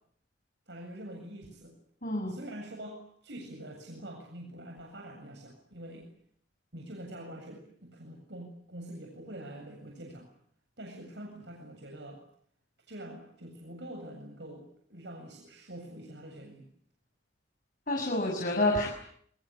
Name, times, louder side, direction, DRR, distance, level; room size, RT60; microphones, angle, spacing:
voice 1, 0.7-1.8 2.3-6.1 6.7-10.3 10.8-12.2 12.9-16.7, right 1 dB, 75° right, 1 dB, 7.8 m, -45 dB
voice 2, 2.0-2.4 17.9-18.9, left 1 dB, 50° left, 1 dB, 7.0 m, -28 dB
28.0 x 24.5 x 8.4 m, 0.64 s
head